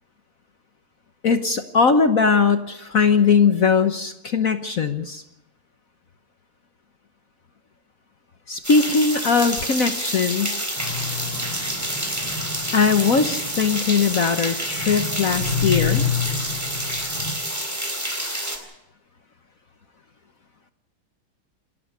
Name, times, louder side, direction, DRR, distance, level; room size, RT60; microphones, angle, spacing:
voice 1, 1.2-5.2 8.5-10.6 12.7-16.0, left 5 dB, 50° left, 9 dB, 1.2 m, -20 dB
sound 1, 8.6-18.6, right 1 dB, 5° right, 3.8 m, -28 dB
sound 2, 10.8-17.3, left 6 dB, 70° right, 5.5 m, -29 dB
27.5 x 12.5 x 8.3 m, 0.93 s
omnidirectional pair, 2.3 m